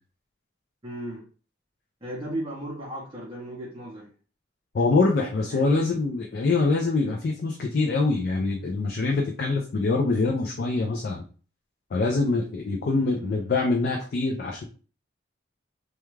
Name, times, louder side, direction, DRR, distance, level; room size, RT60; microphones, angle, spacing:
voice 1, 0.8-1.2 2.0-4.1 5.5-5.9 12.9-13.5, right 1 dB, 25° right, -6 dB, 0.6 m, -36 dB
voice 2, 4.7-11.2 11.9-14.6, left 3 dB, 50° left, 1 dB, 0.3 m, -24 dB
2.3 x 2.3 x 3.0 m, 0.38 s
head